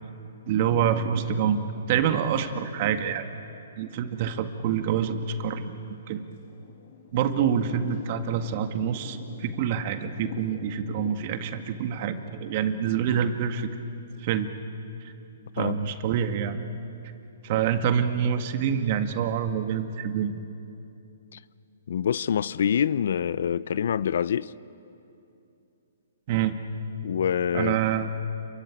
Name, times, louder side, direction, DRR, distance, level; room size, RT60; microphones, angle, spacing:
voice 1, 0.5-1.6 1.9-3.3 3.8-5.8 6.1-6.2 7.1-13.7 14.2-14.5 15.6-16.6 17.4-20.4 26.3-26.5 27.5-28.1, right 8 dB, 45° right, 1.9 m, -26 dB
Thunder / Rain, 5.2-12.2, left 7 dB, 45° left, 2.8 m, -44 dB
voice 2, 21.9-24.5 27.0-27.8, left 8 dB, 65° left, 0.6 m, -26 dB
28.0 x 23.0 x 9.1 m
hypercardioid pair, 145°, 0 cm